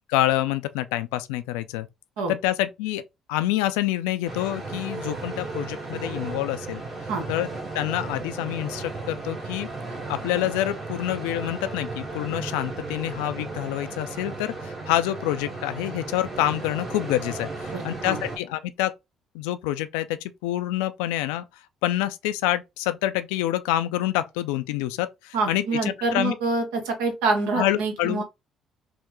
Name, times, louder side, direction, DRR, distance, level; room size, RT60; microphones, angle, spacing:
voice 1, 0.1-1.9 2.3-3.0 3.3-6.8 7.3-7.5 7.7-9.7 10.1-18.9 19.3-21.5 21.8-26.4 27.5-28.2, left 14 dB, 85° left, 0.3 m, -27 dB
sound 1, 4.3-18.4, right 3 dB, 50° right, 1.8 m, -35 dB
voice 2, 17.7-18.2 25.3-28.2, right 3 dB, 85° right, 0.9 m, -26 dB
3.5 x 2.1 x 3.0 m
hypercardioid pair, 60°, 0 cm